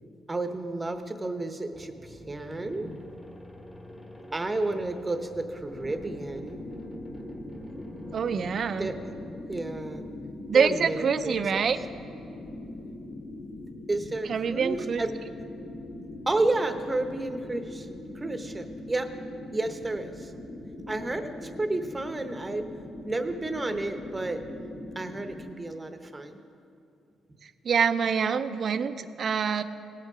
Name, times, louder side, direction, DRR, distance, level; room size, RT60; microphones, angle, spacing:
voice 1, 0.3-3.0 4.3-6.6 8.8-9.0 9.5-10.1 10.5-11.7 13.0-13.1 13.9-15.1 16.3-17.9 18.1-19.1 19.5-20.3 20.9-22.6 23.0-24.4 24.9-26.4, right 2 dB, 20° right, 7 dB, 0.9 m, -31 dB
sound 1, 1.7-10.0, equal, 5° left, 1.3 m, -47 dB
sound 2, 5.7-25.5, left 1 dB, 85° left, 2.4 m, -42 dB
voice 2, 8.1-8.9 10.5-11.8 14.3-15.0 27.6-29.6, right 6 dB, 55° right, 11 dB, 0.5 m, -25 dB
18.0 x 6.6 x 4.9 m, 2.6 s
cardioid pair, 90°, 0 cm